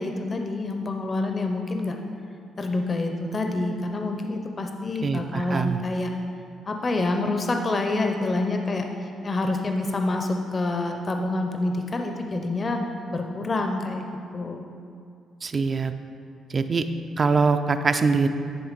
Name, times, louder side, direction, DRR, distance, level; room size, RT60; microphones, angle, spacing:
voice 1, 0.0-2.0 2.6-6.1 6.7-12.8 13.1-14.0 14.3-14.6, left 2 dB, 35° left, 4 dB, 0.6 m, -27 dB
voice 2, 5.0-5.8 15.4-15.9 16.5-16.9 17.2-18.3, right 4 dB, 40° right, 9 dB, 0.4 m, -23 dB
10.5 x 3.4 x 5.1 m, 2.4 s
cardioid pair, 90°, 0 cm